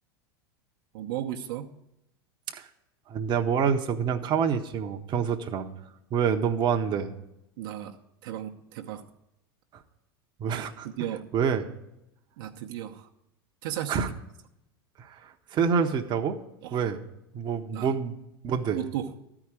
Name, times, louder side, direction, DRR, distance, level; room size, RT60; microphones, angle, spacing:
voice 1, 0.9-1.7 7.6-9.1 10.8-11.3 12.4-13.1 13.6-14.0 16.6-16.8 17.7-17.9 18.7-19.1, right 11 dB, 65° right, 2 dB, 0.9 m, -35 dB
voice 2, 3.1-5.7 6.1-7.1 9.7-9.8 10.4-10.9 11.3-11.6 13.9-14.1 15.0-16.4 16.7-17.0 17.3-18.1 18.4-18.8, right 7 dB, 35° right, 5 dB, 1.0 m, -27 dB
13.0 x 4.9 x 8.9 m, 0.86 s
hypercardioid pair, 90°, 13 cm